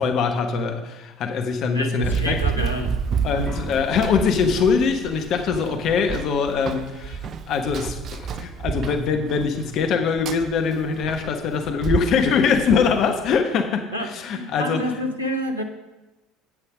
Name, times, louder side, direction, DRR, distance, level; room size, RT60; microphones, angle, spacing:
voice 1, 0.0-2.4 3.2-14.8, left 5 dB, 45° left, 5 dB, 1.1 m, -23 dB
voice 2, 1.7-2.9 3.4-3.5 13.9-15.6, equal, 90° left, 2 dB, 1.1 m, -28 dB
Run, 2.0-13.4, right 6 dB, 40° right, 0.6 m, -30 dB
sound 1, 3.4-6.3, left 2 dB, 10° right, 2.5 m, -43 dB
11.0 x 9.0 x 5.0 m, 1.0 s
figure-of-eight pair, 65°, 0 cm